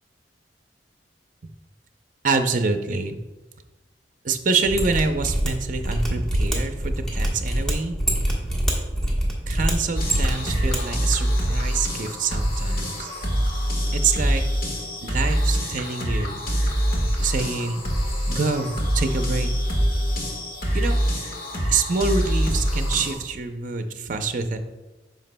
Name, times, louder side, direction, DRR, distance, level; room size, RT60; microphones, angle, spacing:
voice 1, 2.2-3.2 4.2-7.9 9.5-13.1 13.9-14.4 15.0-16.4 17.2-17.8 18.3-19.5 20.7-21.0 21.7-24.6, right 4 dB, 50° right, 7 dB, 0.6 m, -26 dB
Mechanisms, 4.6-10.8 11.0-11.1, right 1 dB, 5° left, 1.3 m, -25 dB
sound 1, 9.9-23.1, equal, 55° left, 1.5 m, -25 dB
9.0 x 6.0 x 2.2 m, 1.1 s
head